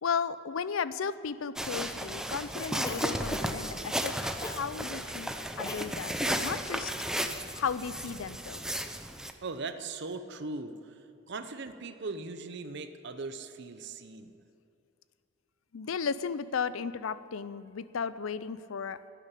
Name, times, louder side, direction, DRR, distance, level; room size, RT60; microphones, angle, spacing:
voice 1, 0.0-5.3 5.6-6.9 7.5-8.6 15.7-19.0, left 6 dB, 90° left, 15 dB, 0.5 m, -35 dB
sound 1, 1.6-9.3, right 1 dB, 5° right, 0.6 m, -34 dB
Cough, 2.8-3.7 4.4-4.7 5.6-5.9 6.1-6.4, left 1 dB, 20° left, 1.0 m, -36 dB
voice 2, 9.4-11.0 11.3-14.3, right 3 dB, 60° right, 9 dB, 0.8 m, -39 dB
12.0 x 8.6 x 9.9 m, 2.6 s
head